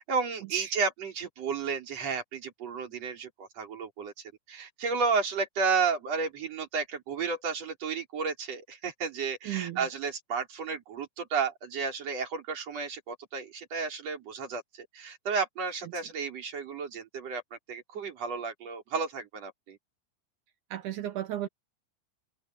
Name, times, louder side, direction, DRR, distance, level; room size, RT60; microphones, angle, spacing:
voice 1, 0.0-19.8, right 5 dB, 35° right, 5.4 m, -32 dB
voice 2, 9.5-9.9 20.7-21.5, right 12 dB, 75° right, 1.9 m, -34 dB
omnidirectional pair, 5.0 m